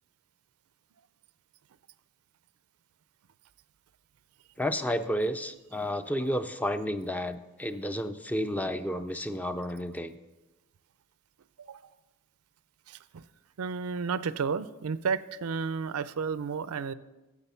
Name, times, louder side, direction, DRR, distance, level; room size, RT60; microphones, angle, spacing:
voice 1, 4.6-10.1, equal, 5° left, 10 dB, 0.4 m, -31 dB
voice 2, 12.9-13.2 13.6-16.9, right 5 dB, 75° right, 16 dB, 0.5 m, -32 dB
9.8 x 7.3 x 7.0 m, 1.1 s
head